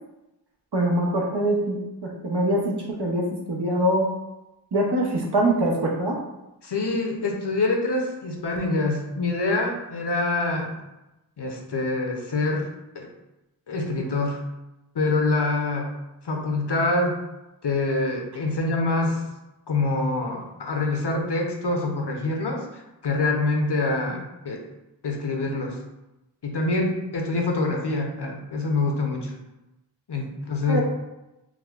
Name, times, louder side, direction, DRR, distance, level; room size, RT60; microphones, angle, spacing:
voice 1, 0.7-4.1 4.7-6.2 30.7-30.8, right 1 dB, 80° right, -1 dB, 0.7 m, -23 dB
voice 2, 6.6-10.7 11.4-12.7 12.9-13.1 13.7-14.4 14.9-15.9 16.2-17.2 17.6-19.2 19.7-24.6 25.0-25.8 26.4-29.3 30.1-30.8, left 2 dB, 85° left, 1 dB, 0.7 m, -25 dB
4.7 x 2.1 x 2.3 m, 0.96 s
wide cardioid pair, 45°, 40 cm